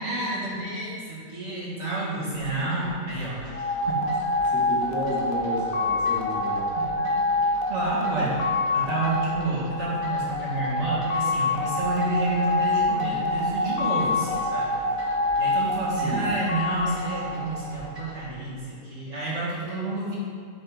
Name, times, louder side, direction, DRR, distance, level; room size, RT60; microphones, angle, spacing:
voice 1, 0.0-3.9 7.7-8.4 8.7-14.7 15.4-20.2, right 2 dB, 45° right, -7 dB, 2.1 m, -30 dB
sound 1, 2.3-18.2, right 1 dB, 20° right, 1.8 m, -45 dB
sound 2, 3.5-18.0, left 2 dB, 65° left, 1.3 m, -26 dB
voice 2, 4.4-6.7 16.0-16.2, left 1 dB, 85° left, -6 dB, 2.5 m, -33 dB
8.9 x 6.0 x 4.0 m, 2.2 s
omnidirectional pair, 1.8 m